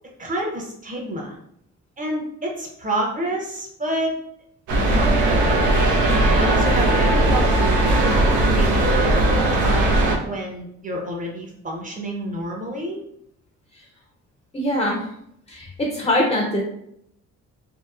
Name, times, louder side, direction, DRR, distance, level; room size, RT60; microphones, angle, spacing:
voice 1, 0.2-1.4 2.0-4.1 4.9-5.6 6.3-8.2 8.5-13.0, right 1 dB, 25° right, -1 dB, 0.7 m, -29 dB
sound 1, 4.7-10.2, right 2 dB, 85° right, 0.6 m, -18 dB
voice 2, 14.5-15.1 15.5-16.6, left 1 dB, 20° left, -1 dB, 0.5 m, -22 dB
2.8 x 2.0 x 2.3 m, 0.75 s
cardioid pair, 90°, 30 cm